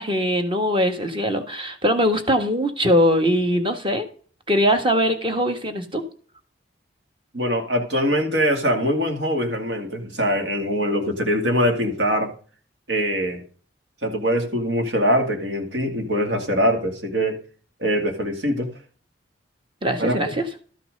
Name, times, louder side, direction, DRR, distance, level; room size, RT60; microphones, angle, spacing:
voice 1, 0.0-4.1 4.5-6.0 19.8-20.5, equal, 25° right, 6 dB, 1.5 m, -21 dB
voice 2, 7.3-12.3 12.9-13.4 14.0-17.4 17.8-18.7 20.0-20.3, equal, 70° right, 4 dB, 2.4 m, -23 dB
13.0 x 5.9 x 5.3 m, 0.41 s
head